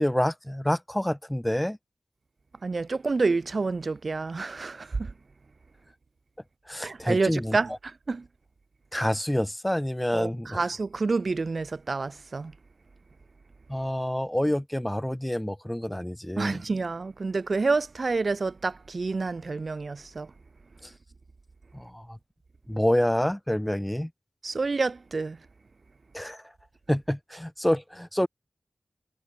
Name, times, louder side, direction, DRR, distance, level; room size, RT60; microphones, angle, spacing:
voice 1, 0.0-1.8 6.7-7.6 8.9-10.6 13.7-16.6 20.8-20.9 21.7-22.2 22.7-24.1 26.1-26.5 26.9-28.3, equal, 10° left, 2.8 m, -27 dB
voice 2, 2.6-5.1 6.8-8.3 10.1-12.5 16.4-20.3 24.4-25.4, right 3 dB, 65° right, 3.3 m, -28 dB
cardioid pair, 45°, 0 cm